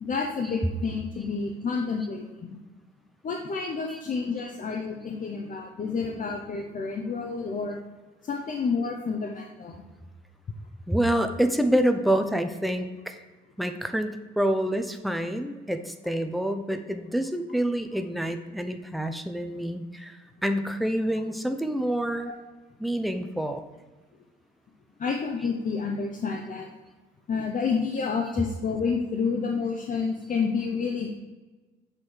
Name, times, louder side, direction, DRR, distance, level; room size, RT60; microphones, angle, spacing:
voice 1, 0.0-2.6 3.2-7.8 8.2-9.8 22.3-22.4 25.0-26.7 27.3-31.1, left 5 dB, 40° left, 1 dB, 0.7 m, -29 dB
voice 2, 10.9-13.2 13.6-22.3 22.8-23.6, right 1 dB, ahead, 7 dB, 0.5 m, -27 dB
7.4 x 3.2 x 4.4 m, 1.3 s
cardioid pair, 90°, 20 cm